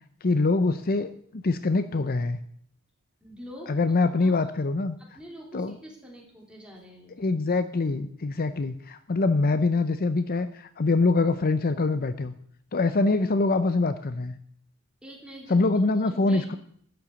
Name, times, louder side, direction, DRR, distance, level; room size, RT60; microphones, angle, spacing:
voice 1, 0.2-2.4 3.7-5.0 5.5-5.7 7.2-12.3 12.7-14.4 15.5-16.5, left 3 dB, 45° left, 11 dB, 0.6 m, -24 dB
voice 2, 3.2-3.8 4.2-4.5 5.0-7.2 15.0-15.7 15.9-16.6, equal, 5° right, -1 dB, 3.3 m, -45 dB
12.0 x 7.8 x 6.9 m, 0.64 s
head